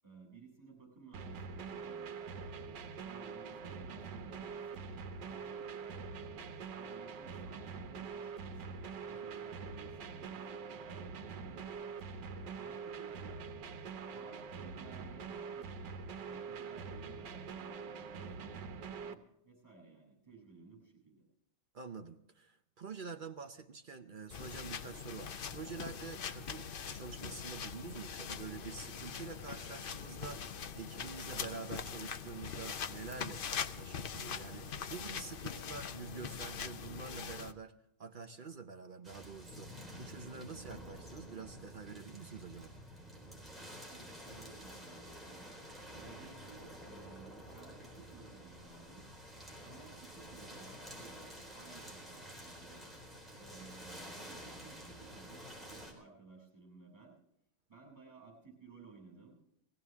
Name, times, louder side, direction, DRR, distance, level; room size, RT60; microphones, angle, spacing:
voice 1, 0.0-2.8 3.0-4.9 5.2-6.4 6.8-11.8 12.3-13.5 14.0-15.7 16.1-21.2 43.9-45.5 45.9-49.0 49.6-51.3 51.5-52.9 53.4-57.2 57.7-59.4, right 4 dB, 20° right, 0 dB, 7.5 m, -57 dB
sound 1, 1.1-19.1, right 5 dB, 85° right, 1.6 m, -44 dB
voice 2, 21.7-33.5 33.8-42.7, right 5 dB, 55° right, 6 dB, 0.5 m, -47 dB
sound 2, 24.3-37.5, left 7 dB, 90° left, 0.4 m, -42 dB
sound 3, 39.0-55.9, equal, ahead, 4.0 m, -50 dB
20.0 x 16.0 x 3.6 m, 0.77 s
omnidirectional pair, 1.9 m